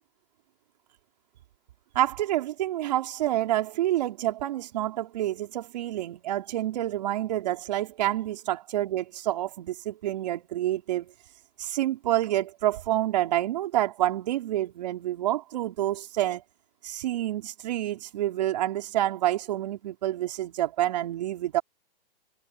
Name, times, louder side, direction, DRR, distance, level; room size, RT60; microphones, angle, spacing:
voice 1, 2.0-11.1 11.6-16.4 16.8-21.6, right 13 dB, 45° right, 3.8 m, -28 dB
hypercardioid pair, 160°, 30 cm